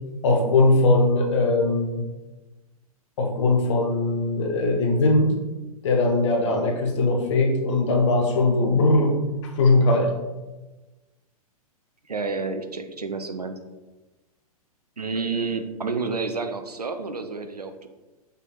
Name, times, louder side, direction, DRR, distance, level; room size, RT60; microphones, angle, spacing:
voice 1, 0.2-2.0 3.2-5.3 5.8-10.1, left 2 dB, 50° left, 3 dB, 0.8 m, -20 dB
voice 2, 12.1-13.6 15.0-17.9, right 4 dB, 90° right, 7 dB, 0.5 m, -29 dB
6.6 x 3.3 x 2.3 m, 1.1 s
figure-of-eight pair, 110°, 19 cm